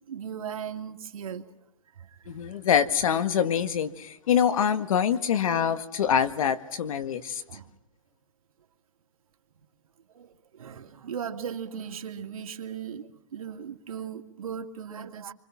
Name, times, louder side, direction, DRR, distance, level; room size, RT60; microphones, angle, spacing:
voice 1, 0.1-1.5 2.0-2.6 7.5-7.7 10.1-15.3, right 7 dB, 90° right, 2.4 m, -38 dB
voice 2, 2.3-7.4, left 8 dB, 75° left, 1.9 m, -25 dB
28.0 x 25.0 x 6.0 m
hypercardioid pair, 145°, 18 cm